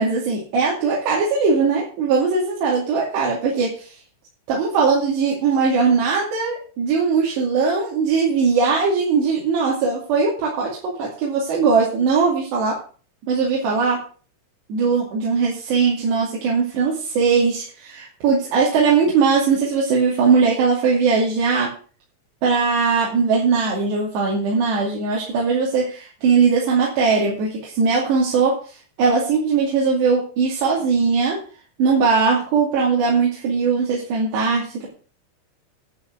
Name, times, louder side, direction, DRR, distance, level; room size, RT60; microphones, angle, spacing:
voice 1, 0.0-4.0 4.5-12.8 13.3-14.0 14.7-21.7 22.4-31.4 31.8-34.9, right 5 dB, 70° right, -3 dB, 4.6 m, -20 dB
11.0 x 5.6 x 8.2 m, 0.39 s
omnidirectional pair, 5.2 m